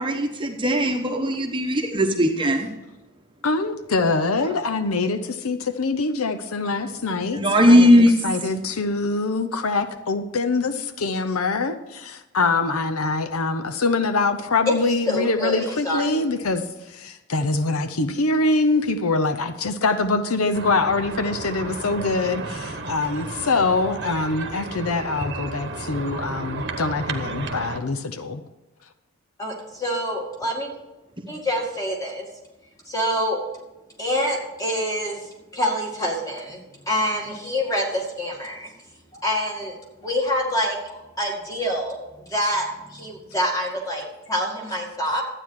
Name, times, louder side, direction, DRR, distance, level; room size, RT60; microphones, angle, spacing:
voice 1, 0.0-2.7 4.5-4.6 7.3-8.1, equal, 20° right, 3 dB, 0.9 m, -18 dB
voice 2, 3.4-28.4, left 3 dB, 80° left, 9 dB, 0.8 m, -24 dB
voice 3, 15.1-16.2 29.4-30.7 31.3-32.3 32.9-33.4 34.0-36.6 36.9-38.7 39.1-42.0 42.3-45.2, equal, 15° left, -1 dB, 2.1 m, -26 dB
sound 1, 20.5-27.8, right 3 dB, 50° right, 1.0 m, -33 dB
12.5 x 8.9 x 4.8 m, 1.0 s
head